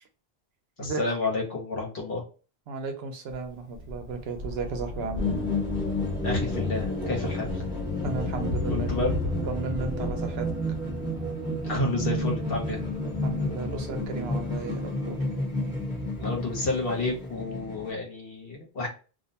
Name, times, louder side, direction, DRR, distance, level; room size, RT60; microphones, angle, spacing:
voice 1, 0.8-2.2 6.2-7.6 8.7-9.1 11.6-12.8 16.2-18.9, left 2 dB, 65° left, 1.1 m, -30 dB
voice 2, 2.7-5.4 8.0-10.5 13.2-15.2, right 4 dB, 75° right, 0.8 m, -35 dB
Thunder, 3.3-16.2 17.1-17.2, left 1 dB, 90° left, 1.0 m, -37 dB
sound 1, 5.1-17.9, left 1 dB, 5° right, 0.9 m, -31 dB
2.5 x 2.1 x 2.7 m
omnidirectional pair, 1.0 m